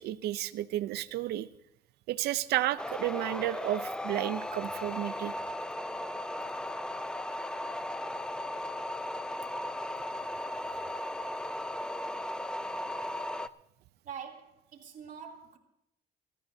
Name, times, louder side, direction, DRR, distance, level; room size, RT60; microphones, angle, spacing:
voice 1, 0.0-1.5 2.1-5.3, right 14 dB, 75° right, 0.6 m, -32 dB
sound 1, 2.8-13.5, left 1 dB, 5° left, 0.5 m, -36 dB
voice 2, 14.0-15.6, right 7 dB, 55° right, 3.0 m, -45 dB
24.0 x 13.5 x 2.8 m
cardioid pair, 110°, 17 cm